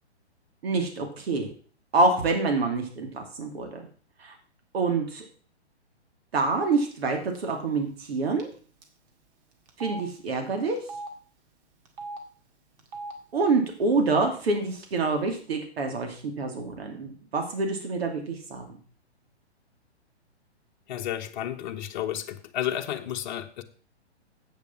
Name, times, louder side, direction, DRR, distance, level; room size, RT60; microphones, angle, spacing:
voice 1, 0.6-1.5 1.9-3.8 4.2-4.3 4.7-5.2 6.3-8.5 9.8-10.8 13.3-18.6, right 3 dB, 60° right, 3 dB, 2.6 m, -26 dB
Telephone, 6.9-7.1 7.4-7.5 8.4-8.5 8.8-8.9 9.7-10.0 10.8-11.1 11.9-12.2 12.8-13.1 13.9-14.0 14.3-15.0, right 3 dB, 35° right, 2.0 m, -39 dB
voice 2, 20.9-23.6, left 11 dB, 45° left, 4 dB, 1.1 m, -32 dB
8.4 x 6.8 x 5.9 m, 0.42 s
hypercardioid pair, 135°, 34 cm